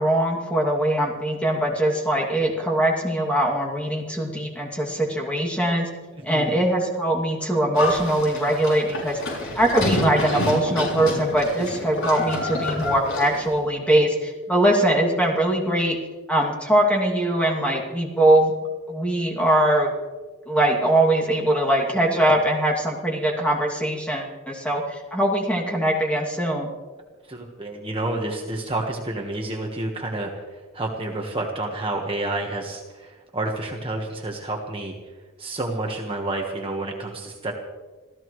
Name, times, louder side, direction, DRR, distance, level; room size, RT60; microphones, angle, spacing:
voice 1, 0.0-5.9 6.2-9.2 9.6-16.0 16.3-18.5 18.9-19.9 20.5-26.7, right 1 dB, 5° left, -1 dB, 2.5 m, -22 dB
voice 2, 6.2-6.6 27.3-35.0 35.4-37.5, right 2 dB, 25° right, 0 dB, 1.4 m, -29 dB
Livestock farm animals working animals, 7.8-13.5, left 1 dB, 70° left, 6.4 m, -28 dB
26.0 x 16.0 x 3.2 m, 1.3 s
head